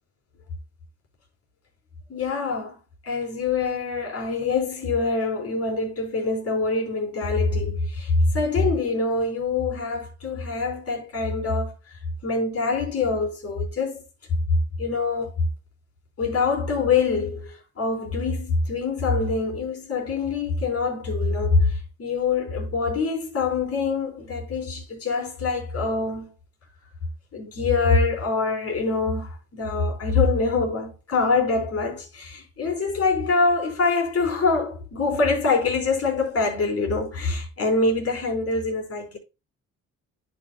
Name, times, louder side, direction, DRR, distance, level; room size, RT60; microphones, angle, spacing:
voice 1, 2.1-2.8 3.0-14.0 14.5-15.5 16.2-26.3 27.3-39.2, left 3 dB, 50° left, 4.3 m, -24 dB
10.5 x 6.3 x 2.3 m
cardioid pair, 90°, 30 cm